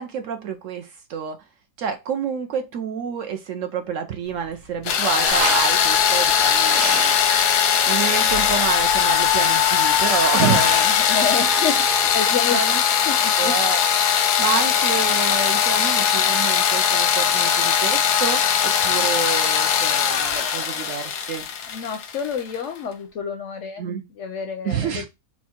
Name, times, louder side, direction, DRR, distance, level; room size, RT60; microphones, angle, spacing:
voice 1, 0.0-1.4 1.8-6.8 7.1-7.4 7.8-10.7 12.5-12.8 13.4-13.8 14.4-21.4 23.8-24.0 24.6-25.1, right 7 dB, 65° right, 0.8 m, -28 dB
sound 1, 4.3-12.2, right 5 dB, 90° right, 1.3 m, -33 dB
sound 2, 4.9-22.6, left 8 dB, 90° left, 1.2 m, -20 dB
voice 2, 10.3-11.8 12.1-12.6 13.1-13.5 21.7-23.8 24.1-25.1, left 6 dB, 65° left, 0.7 m, -28 dB
4.3 x 2.2 x 4.2 m
omnidirectional pair, 1.7 m